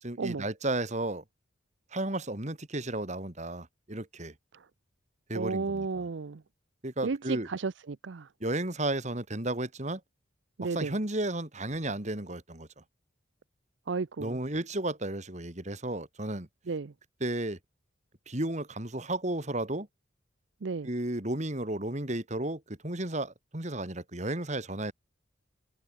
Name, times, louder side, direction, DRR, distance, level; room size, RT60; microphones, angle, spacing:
voice 1, 0.0-1.2 1.9-4.3 5.3-6.0 6.8-7.5 8.4-10.0 10.6-12.7 14.2-16.5 17.2-17.6 18.3-19.9 20.8-24.9, right 1 dB, 35° right, 2.6 m, -33 dB
voice 2, 5.3-6.4 7.0-8.3 10.6-10.9 13.9-14.4 16.7-16.9 20.6-20.9, right 4 dB, 65° right, 0.6 m, -33 dB
head